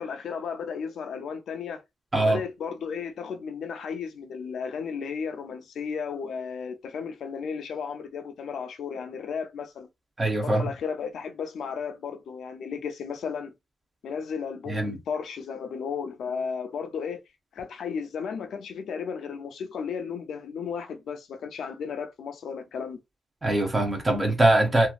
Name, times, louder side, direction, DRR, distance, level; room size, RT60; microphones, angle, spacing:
voice 1, 0.0-1.8 2.2-9.9 10.4-13.5 14.0-17.2 17.5-23.0, left 6 dB, 70° left, 0.5 m, -34 dB
voice 2, 10.2-10.7 14.7-15.0 23.4-24.9, right 1 dB, 15° right, 0.7 m, -22 dB
2.9 x 2.3 x 2.4 m
wide cardioid pair, 175°, 0 cm